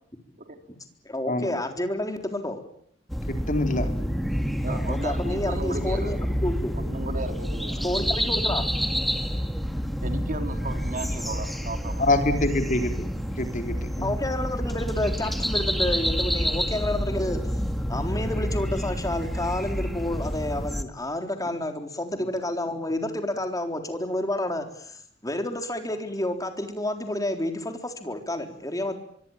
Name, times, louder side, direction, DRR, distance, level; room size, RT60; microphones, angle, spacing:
voice 1, 1.0-2.6 4.7-6.7 7.8-8.6 9.3-9.5 14.0-17.4 17.9-29.0, left 1 dB, 20° left, 6 dB, 3.8 m, -30 dB
sound 1, 3.1-20.8, equal, ahead, 2.2 m, -28 dB
voice 2, 3.3-3.9 12.0-12.9 13.4-14.2, left 2 dB, 45° left, 6 dB, 4.2 m, -25 dB
voice 3, 4.6-6.1 6.7-7.9 10.0-12.1, right 2 dB, 45° right, 7 dB, 3.6 m, -35 dB
24.5 x 24.5 x 8.9 m, 0.66 s
head